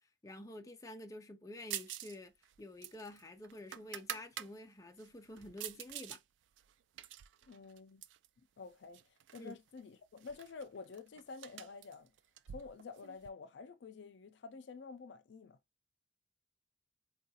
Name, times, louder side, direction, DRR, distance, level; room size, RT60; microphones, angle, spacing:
voice 1, 0.2-2.3 2.6-6.2 9.4-9.5, left 1 dB, 20° left, 0.5 m, -49 dB
sound 1, 1.7-2.2 2.4-4.5 5.0-6.2 6.6-8.3 8.9-9.5 9.8-9.9 10.2-13.3, right 12 dB, 90° right, 0.3 m, -46 dB
voice 2, 7.5-8.0 8.6-9.0 9.3-12.1 12.5-15.6, left 4 dB, 80° left, 0.4 m, -49 dB
3.7 x 2.3 x 2.7 m
head